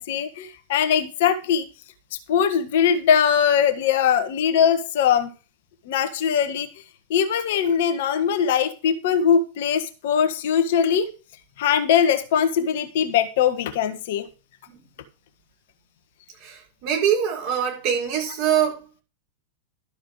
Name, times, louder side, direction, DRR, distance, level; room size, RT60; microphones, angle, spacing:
voice 1, 0.0-1.6 2.3-5.3 5.9-6.7 7.1-11.1 11.6-14.3, left 8 dB, 55° left, 1.3 m, -21 dB
voice 2, 16.4-19.0, right 9 dB, 45° right, 4.9 m, -24 dB
12.5 x 6.5 x 4.8 m
figure-of-eight pair, 90°, 0 cm